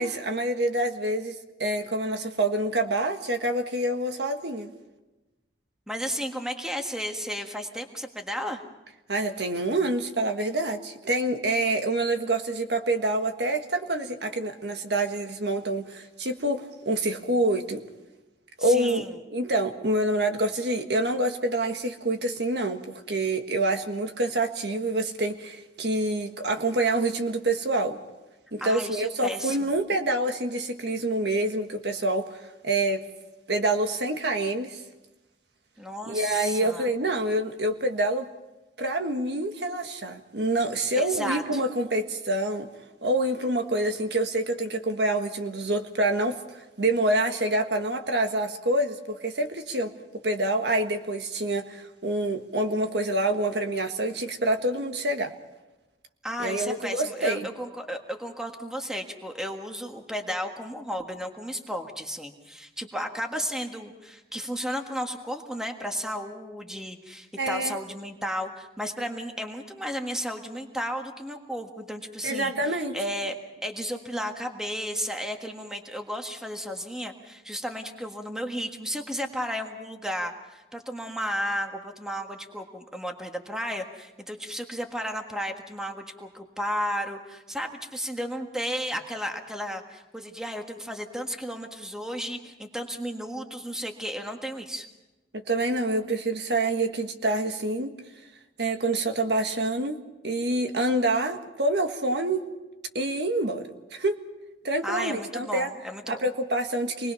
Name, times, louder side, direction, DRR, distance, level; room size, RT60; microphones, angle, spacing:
voice 1, 0.0-4.7 9.1-17.8 18.6-19.0 19.3-28.0 28.5-32.4 32.6-33.0 33.5-34.8 36.0-38.3 38.8-42.7 43.0-49.9 50.2-55.3 56.4-57.5 67.4-67.8 72.2-73.0 95.5-97.9 98.6-100.0 100.2-102.5 102.9-103.6 103.9-104.2 104.6-105.7 106.1-107.1, right 1 dB, 70° right, 5 dB, 1.6 m, -27 dB
voice 2, 5.9-8.6 18.6-19.1 28.6-29.7 35.8-36.9 40.9-41.6 56.2-73.4 73.6-94.9 104.8-106.2, equal, 5° right, 3 dB, 1.6 m, -33 dB
27.5 x 20.5 x 5.7 m, 1.1 s
head